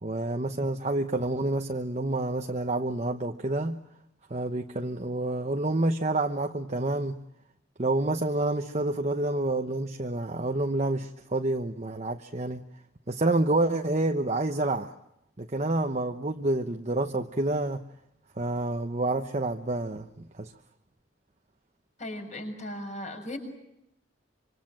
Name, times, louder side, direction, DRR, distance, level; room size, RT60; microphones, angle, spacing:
voice 1, 0.0-3.8 4.3-7.2 7.8-12.6 13.1-14.9 15.4-17.8 18.4-20.5, right 2 dB, 35° right, 4 dB, 1.0 m, -28 dB
voice 2, 22.0-23.4, left 1 dB, 35° left, 5 dB, 6.8 m, -37 dB
26.0 x 26.0 x 7.7 m, 0.84 s
head